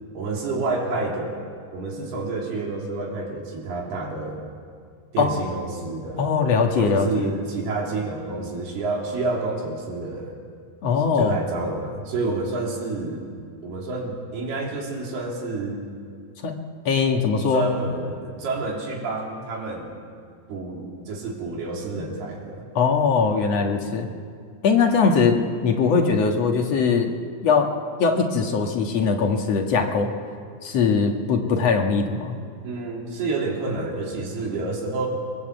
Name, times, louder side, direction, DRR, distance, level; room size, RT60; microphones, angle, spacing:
voice 1, 0.2-1.4 1.7-4.4 5.1-6.3 6.8-10.4 11.2-13.2 13.6-15.8 17.5-20.0 20.5-22.7 32.6-35.1, right 3 dB, 75° right, -1 dB, 5.2 m, -29 dB
voice 2, 6.2-7.3 10.8-11.4 16.4-16.6 16.9-17.6 22.8-24.1 24.6-27.1 27.4-27.7 28.0-30.1 30.6-32.4, left 5 dB, 50° left, 2 dB, 2.3 m, -21 dB
28.0 x 21.5 x 8.0 m, 2.2 s
omnidirectional pair, 4.6 m